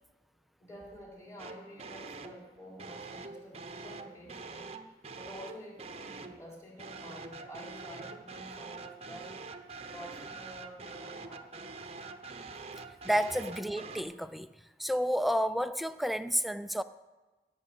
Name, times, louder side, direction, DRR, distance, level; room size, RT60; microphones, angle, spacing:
voice 1, 0.6-4.7 5.2-9.4 9.9-11.9, equal, 20° left, 3.9 m, -49 dB
sound 1, 1.4-2.4 2.8-6.4 6.8-14.0, right 4 dB, 35° right, 0.9 m, -45 dB
voice 2, 13.0-14.5 14.8-16.8, equal, ahead, 0.4 m, -30 dB
16.5 x 6.3 x 7.8 m
head